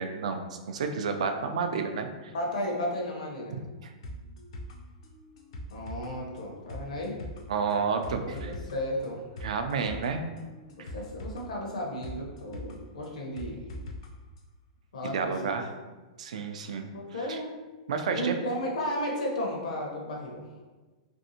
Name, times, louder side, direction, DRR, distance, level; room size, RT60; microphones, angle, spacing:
voice 1, 0.0-2.3 3.5-3.9 7.5-8.5 9.4-10.2 10.8-10.9 15.0-15.7 16.2-16.9 17.3-17.4 17.9-18.4, right 5 dB, 65° right, 6 dB, 0.4 m, -31 dB
voice 2, 2.3-3.5 5.7-7.2 8.2-9.2 10.8-13.6 14.9-15.3 16.9-17.5 18.1-20.4, left 1 dB, 70° left, -1 dB, 0.8 m, -34 dB
sound 1, 4.0-14.1 14.4-14.5, equal, 50° left, 0.4 m, -43 dB
3.2 x 2.6 x 2.7 m, 1.3 s
supercardioid pair, 180°, 4 cm